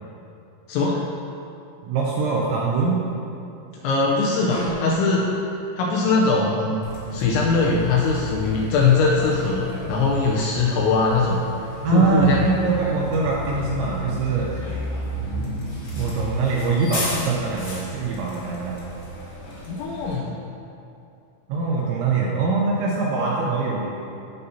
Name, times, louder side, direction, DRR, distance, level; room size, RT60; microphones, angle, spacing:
voice 1, 0.7-1.0 3.8-5.3 5.8-6.8 7.1-11.4 11.9-12.5 19.7-20.4, left 4 dB, 85° left, -3 dB, 2.7 m, -21 dB
voice 2, 1.8-3.0 11.8-14.6 16.0-18.8 21.5-23.9, right 4 dB, 85° right, -3 dB, 2.7 m, -23 dB
sound 1, 4.5-5.1, equal, 65° left, 3.0 m, -32 dB
Bus, 6.8-20.1, equal, 50° left, 1.7 m, -33 dB
14.5 x 5.6 x 2.7 m, 2.7 s
omnidirectional pair, 5.9 m